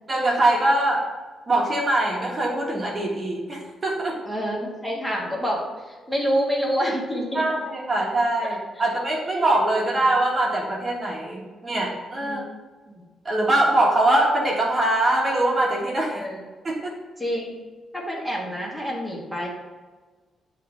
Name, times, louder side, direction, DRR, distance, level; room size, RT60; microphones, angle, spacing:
voice 1, 0.1-1.0 1.5-4.2 7.3-12.4 13.2-16.2 16.6-17.0, right 1 dB, 30° right, -2 dB, 1.4 m, -22 dB
voice 2, 4.3-5.6 5.9-7.4 12.2-12.4 12.9-13.0 16.1-16.4 17.2-17.6 17.9-19.5, equal, 5° left, -3 dB, 1.7 m, -27 dB
8.2 x 3.3 x 5.5 m, 1.3 s
cardioid pair, 115°, 0 cm